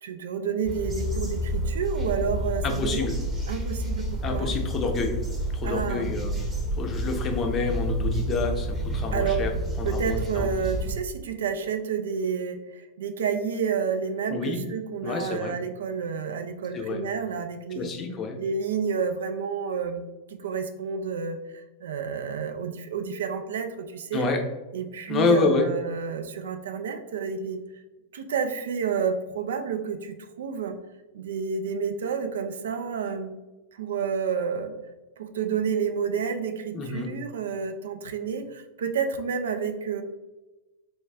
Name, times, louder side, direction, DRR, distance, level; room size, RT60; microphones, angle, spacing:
voice 1, 0.0-3.1 3.5-4.5 5.6-6.1 9.1-9.4 9.8-17.9 18.4-20.0 20.3-24.2 24.7-27.6 28.1-30.8 31.1-33.3 33.7-34.7 35.2-40.0, right 6 dB, 60° right, 7 dB, 0.3 m, -30 dB
sound 1, 0.7-11.0, right 1 dB, 15° right, 0.8 m, -29 dB
voice 2, 2.6-3.2 4.2-5.2 5.5-6.4 6.8-9.5 9.8-10.5 14.3-14.6 15.0-15.5 16.7-17.0 17.7-18.4 24.1-24.4 25.1-25.7 36.7-37.1, left 4 dB, 25° left, 2 dB, 0.6 m, -28 dB
4.0 x 2.3 x 3.3 m, 1.1 s
figure-of-eight pair, 90°, 0 cm